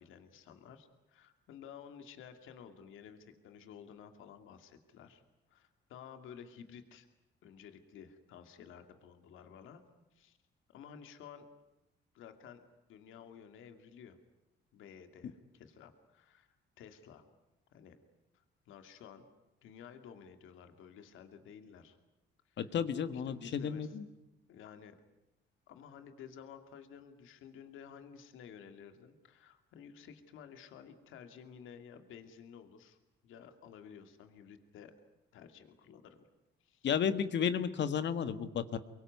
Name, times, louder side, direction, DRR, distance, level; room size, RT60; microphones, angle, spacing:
voice 1, 0.0-5.2 5.5-7.1 7.4-9.8 10.1-10.4 10.7-11.5 12.1-14.2 14.7-17.2 17.7-18.0 18.3-19.2 19.6-22.0 22.5-22.7 23.1-24.0 24.5-25.0 25.7-33.0 33.2-35.0 35.3-36.2 36.6-36.9, left 7 dB, 85° left, 7 dB, 2.5 m, -53 dB
voice 2, 22.6-24.0 36.8-38.8, left 7 dB, 65° left, 11 dB, 1.7 m, -33 dB
24.5 x 23.0 x 9.5 m, 0.91 s
cardioid pair, 90°, 20 cm